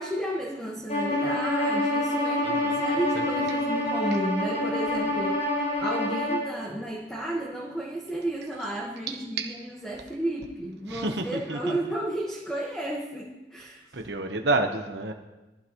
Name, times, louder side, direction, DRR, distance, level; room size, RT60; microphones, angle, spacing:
voice 1, 0.0-5.4 5.8-13.9, right 1 dB, 5° left, -3 dB, 1.6 m, -32 dB
Bowed string instrument, 0.9-6.5, left 1 dB, 45° left, 5.2 m, -27 dB
voice 2, 2.4-2.8 3.4-3.5 4.1-4.2 9.1-9.5 10.9-11.8 13.9-15.1, right 2 dB, 75° right, 3 dB, 1.1 m, -30 dB
20.0 x 15.0 x 3.2 m, 1.1 s
head